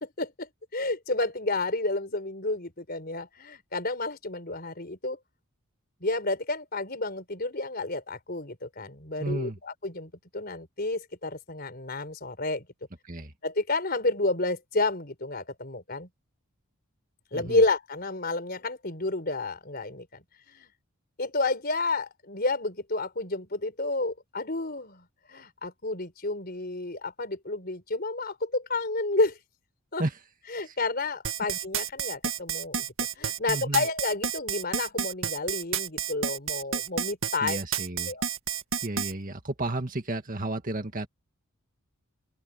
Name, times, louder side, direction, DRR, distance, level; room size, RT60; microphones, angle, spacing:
voice 1, 0.0-5.2 6.0-12.7 13.4-16.1 17.3-20.2 20.5-20.7 21.2-29.4 29.9-30.0 30.5-32.9 33.2-37.6 38.1-38.3, left 2 dB, 45° left, 4.6 m, -30 dB
voice 2, 9.2-9.6 13.1-13.3 17.3-17.6 30.0-30.1 30.6-30.7 33.5-33.8 37.4-38.1 38.8-41.1, right 2 dB, 35° right, 2.0 m, -32 dB
sound 1, 31.2-39.1, right 8 dB, 65° right, 2.2 m, -30 dB
open air
head